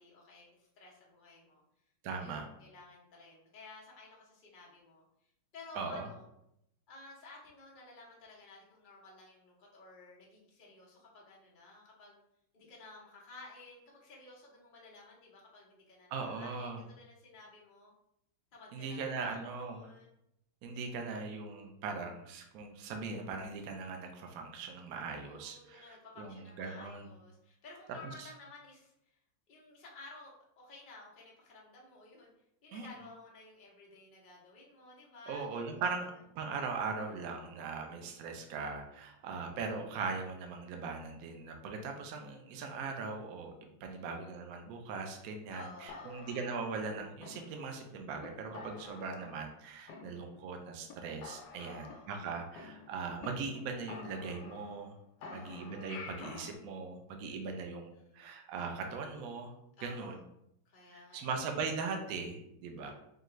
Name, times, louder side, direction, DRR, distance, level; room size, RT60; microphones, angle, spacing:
voice 1, 0.0-1.6 2.1-5.0 5.5-6.2 6.9-12.2 12.5-17.9 18.5-20.1 25.1-29.2 29.5-30.3 30.6-32.3 32.6-35.8 37.7-38.4 43.9-44.3 45.5-46.3 51.6-52.1 55.2-55.7 57.3-57.6 57.9-58.3 59.8-60.2 60.6-61.4 62.7-62.9, left 2 dB, 45° left, -3 dB, 0.6 m, -54 dB
voice 2, 2.0-2.4 5.7-6.1 16.1-16.8 18.7-19.9 20.6-27.1 28.0-28.3 32.7-32.9 35.3-55.0 55.3-59.5 59.8-60.2 60.9-62.9, right 4 dB, 80° right, 4 dB, 0.7 m, -40 dB
sound 1, 45.9-47.8 48.2-48.3 48.5-49.6 49.9-50.6 50.9-51.0 51.2-53.3 53.5-53.6 53.9-54.9 55.2-56.6, left 5 dB, 75° left, 1.0 m, -49 dB
4.8 x 2.5 x 3.1 m, 0.78 s
omnidirectional pair, 2.2 m